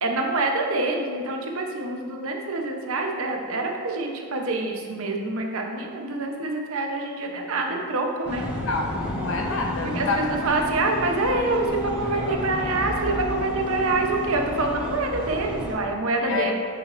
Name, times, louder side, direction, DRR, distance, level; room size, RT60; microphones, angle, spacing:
voice 1, 0.0-8.4 9.9-16.5, right 2 dB, 70° right, 2 dB, 0.8 m, -26 dB
sound 1, 8.2-15.7, left 2 dB, 5° right, 1.0 m, -31 dB
voice 2, 8.5-10.3 16.2-16.5, left 3 dB, 60° left, 2 dB, 0.9 m, -28 dB
8.5 x 6.3 x 2.6 m, 2.1 s
head